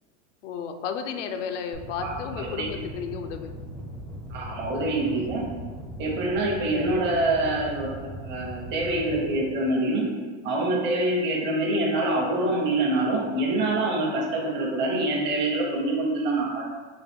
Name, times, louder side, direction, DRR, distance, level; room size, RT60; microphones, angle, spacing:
voice 1, 0.4-3.6 5.1-5.2 11.4-11.6, left 7 dB, 85° left, 6 dB, 0.5 m, -33 dB
sound 1, 1.7-9.4, equal, ahead, 0.5 m, -39 dB
voice 2, 2.0-2.7 4.3-5.4 6.0-10.0 10.4-16.7, right 2 dB, 30° right, -2 dB, 0.8 m, -25 dB
4.0 x 2.2 x 3.5 m, 1.4 s
supercardioid pair, 130°, 36 cm